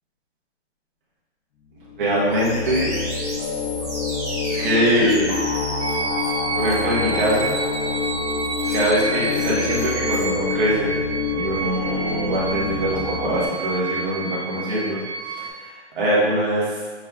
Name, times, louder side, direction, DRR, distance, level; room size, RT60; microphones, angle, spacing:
sound 1, 1.9-13.5, left 5 dB, 65° left, 0.6 m, -27 dB
voice 1, 2.0-2.9 4.5-5.4 6.5-7.5 8.7-11.0 11.3-16.8, equal, 45° right, -6 dB, 1.3 m, -23 dB
sound 2, 2.3-10.3, right 1 dB, 15° right, 0.5 m, -32 dB
sound 3, 5.8-15.5, right 5 dB, 60° right, 0.5 m, -30 dB
6.3 x 2.4 x 2.3 m, 1.5 s
hypercardioid pair, 180°, 36 cm